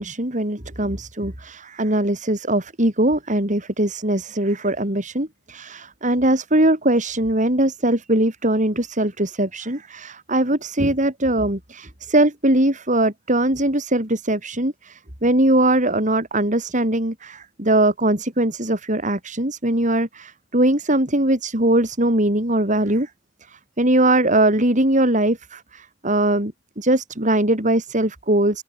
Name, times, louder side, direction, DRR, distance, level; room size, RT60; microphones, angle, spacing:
voice 1, 0.0-23.1 23.5-28.6, right 1 dB, 40° right, 5.6 m, -21 dB
open air
head